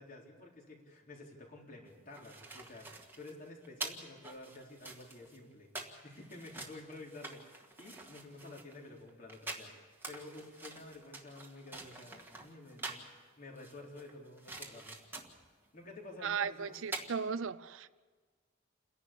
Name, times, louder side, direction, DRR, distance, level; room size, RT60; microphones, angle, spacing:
voice 1, 0.0-9.7 10.1-15.0 15.7-16.8, left 2 dB, 45° left, -1 dB, 3.8 m, -51 dB
sound 1, 1.9-13.1 13.6-15.5 16.4-16.5 16.7-17.1, right 3 dB, 10° right, 1.7 m, -46 dB
voice 2, 16.2-17.9, right 6 dB, 70° right, 15 dB, 0.6 m, -36 dB
29.0 x 11.0 x 8.4 m, 1.5 s
head